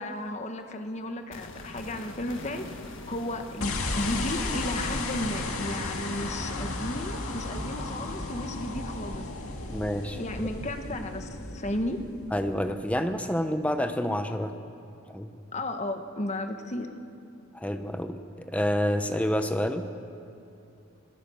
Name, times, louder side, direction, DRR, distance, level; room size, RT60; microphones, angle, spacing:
voice 1, 0.0-9.3 10.2-12.0 15.5-16.9, left 1 dB, 30° left, 6 dB, 1.2 m, -34 dB
sound 1, 1.3-11.3 11.6-11.7, left 2 dB, 60° left, 1.7 m, -46 dB
sound 2, 3.6-13.0, left 2 dB, 85° left, 2.0 m, -34 dB
voice 2, 9.7-10.2 12.3-14.5 15.1-15.3 17.5-19.9, equal, 5° left, 8 dB, 0.8 m, -28 dB
26.0 x 15.0 x 7.0 m, 2.6 s
head